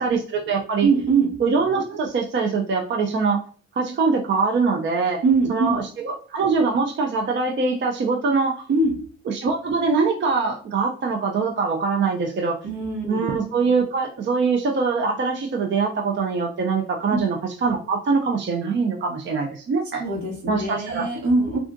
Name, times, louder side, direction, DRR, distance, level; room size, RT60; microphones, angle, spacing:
voice 1, 0.0-0.9 1.4-3.4 3.8-5.2 5.5-8.7 9.3-12.6 13.1-20.0 20.5-21.1, right 4 dB, 40° right, 2 dB, 0.5 m, -23 dB
voice 2, 0.8-1.4 5.2-5.8 8.7-8.9 12.6-13.3 17.1-17.2 20.0-21.6, right 3 dB, 70° right, 0 dB, 1.2 m, -22 dB
3.4 x 2.4 x 2.5 m, 0.41 s
cardioid pair, 90°, 30 cm